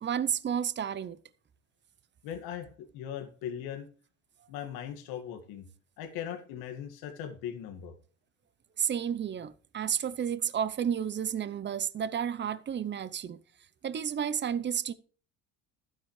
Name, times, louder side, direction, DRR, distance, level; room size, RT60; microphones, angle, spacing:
voice 1, 0.0-1.2 8.8-13.4 13.8-14.9, right 8 dB, 30° right, 0.7 m, -31 dB
voice 2, 2.2-2.7 2.9-3.9 4.5-5.7 6.0-7.9, left 9 dB, 80° left, 2.1 m, -39 dB
11.5 x 9.9 x 3.2 m
supercardioid pair, 100°, 36 cm